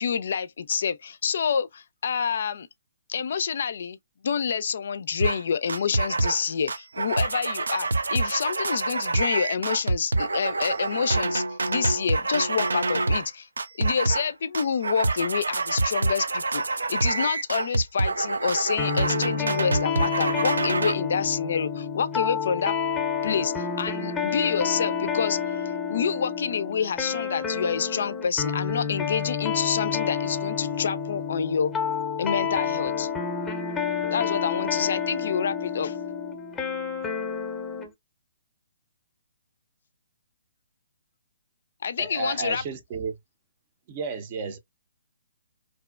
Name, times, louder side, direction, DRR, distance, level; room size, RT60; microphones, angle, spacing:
voice 1, 0.0-2.7 3.1-4.0 4.2-13.5 13.8-16.6 16.9-22.8 23.2-25.4 25.9-31.7 32.2-33.1 34.1-36.0 41.8-42.6, left 6 dB, 65° left, 0.3 m, -28 dB
sound 1, 5.2-5.4 5.7-6.4 6.7-13.3 13.6-14.3 14.5-20.9, right 3 dB, 85° right, 0.4 m, -26 dB
sound 2, 18.8-37.9, left 6 dB, 5° left, 0.7 m, -29 dB
voice 2, 42.0-43.2 43.9-44.6, right 5 dB, 35° right, 0.5 m, -32 dB
2.6 x 2.1 x 2.3 m
hypercardioid pair, 140°, 0 cm